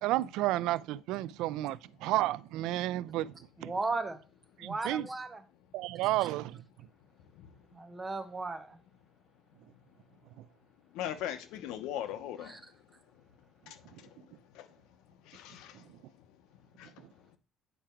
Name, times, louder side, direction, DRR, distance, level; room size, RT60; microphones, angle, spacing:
voice 1, 0.0-3.3 3.6-3.7 4.6-5.1 5.7-6.6, right 16 dB, 80° right, 0.3 m, -31 dB
voice 2, 3.6-4.2 4.6-5.4 7.7-8.8 12.4-12.6, right 3 dB, 15° right, 0.9 m, -36 dB
voice 3, 11.0-12.5 15.3-15.7 16.8-16.9, left 11 dB, 85° left, 0.9 m, -38 dB
9.2 x 4.9 x 4.5 m
cardioid pair, 170°, 0 cm